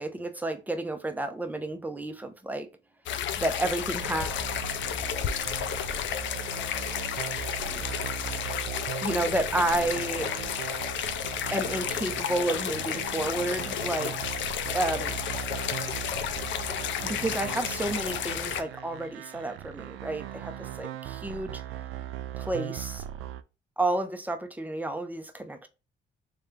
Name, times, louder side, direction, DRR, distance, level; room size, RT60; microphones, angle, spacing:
voice 1, 0.0-2.7 3.4-4.4 7.6-7.8 9.0-10.3 11.5-14.1 14.7-15.1 17.0-21.6 22.4-23.0 23.8-25.7, right 2 dB, 10° right, 0.7 m, -31 dB
sound 1, 3.1-18.6, left 9 dB, 70° left, 0.5 m, -32 dB
sound 2, 4.0-23.4, right 12 dB, 90° right, 0.4 m, -39 dB
3.3 x 3.2 x 3.6 m
cardioid pair, 90°, 20 cm